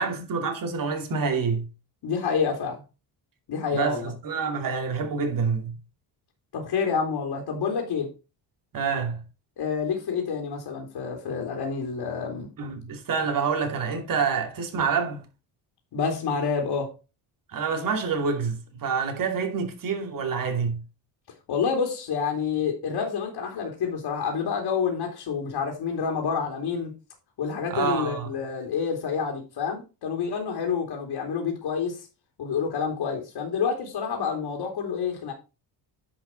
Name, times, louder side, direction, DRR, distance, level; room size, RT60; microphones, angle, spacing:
voice 1, 0.0-1.6 3.7-5.7 8.7-9.2 12.6-15.2 17.5-20.8 27.7-28.3, right 5 dB, 50° right, 2.7 m, -27 dB
voice 2, 2.0-2.8 3.5-4.1 6.5-8.1 9.6-12.5 15.9-16.9 21.5-26.9 27.4-32.1 32.4-35.3, left 6 dB, 65° left, 3.0 m, -28 dB
10.0 x 5.7 x 4.4 m
cardioid pair, 115°, 44 cm